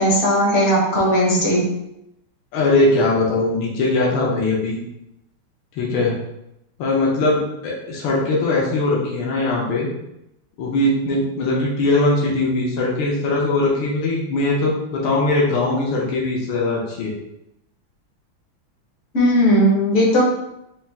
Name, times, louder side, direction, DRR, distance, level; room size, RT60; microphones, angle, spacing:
voice 1, 0.0-1.7 19.1-20.2, equal, 50° left, -3 dB, 0.9 m, -17 dB
voice 2, 2.5-4.8 5.7-6.1 6.8-9.9 10.6-17.1, left 2 dB, 75° left, -4 dB, 1.6 m, -20 dB
4.3 x 2.4 x 3.4 m, 0.85 s
omnidirectional pair, 2.3 m